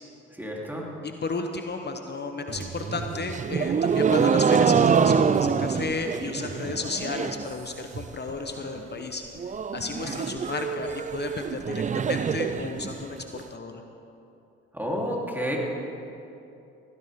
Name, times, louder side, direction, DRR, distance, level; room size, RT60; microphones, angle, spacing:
voice 1, 0.3-0.9 10.0-10.2 14.7-15.6, equal, 5° right, -3 dB, 3.5 m, -30 dB
voice 2, 1.2-9.2 9.7-13.7, left 4 dB, 35° left, 5 dB, 1.1 m, -33 dB
sound 1, 2.5-7.5 7.8-8.3 8.6-8.7 9.0-9.1 9.4-13.4, right 6 dB, 25° right, 0.5 m, -25 dB
17.5 x 15.5 x 3.7 m, 2.8 s
hypercardioid pair, 55°, 29 cm